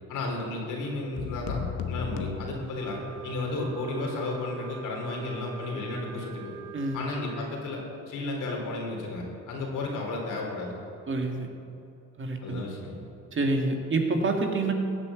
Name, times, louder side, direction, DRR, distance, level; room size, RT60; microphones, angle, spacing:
voice 1, 0.1-1.6 1.9-6.6 6.9-10.7 12.4-12.9, left 2 dB, 90° left, 0 dB, 3.8 m, -33 dB
sound 1, 1.2-3.4, left 6 dB, 70° left, 1.1 m, -35 dB
Wind instrument woodwind instrument, 2.7-7.6, right 7 dB, 60° right, 1.5 m, -44 dB
voice 2, 11.1-11.5 12.2-12.6 13.3-14.7, right 3 dB, 40° right, 3 dB, 2.2 m, -27 dB
15.5 x 9.0 x 8.3 m, 2.8 s
cardioid pair, 90°, 30 cm